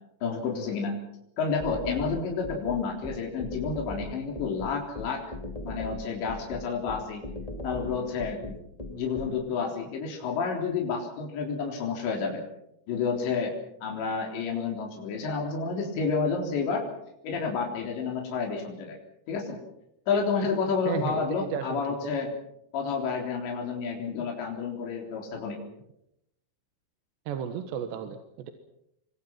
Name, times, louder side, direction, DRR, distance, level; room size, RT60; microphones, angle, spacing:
voice 1, 0.2-1.0 1.4-5.2 5.6-7.2 7.6-8.5 8.9-12.4 12.9-13.6 13.8-16.8 17.2-19.0 19.3-19.6 20.1-22.3 22.7-25.6, left 5 dB, 80° left, 1 dB, 5.9 m, -30 dB
sound 1, 1.6-9.3, left 1 dB, 15° left, 1.7 m, -37 dB
voice 2, 20.9-22.1 27.3-28.5, right 8 dB, 80° right, 7 dB, 3.6 m, -34 dB
27.5 x 24.0 x 6.0 m, 0.81 s
omnidirectional pair, 5.0 m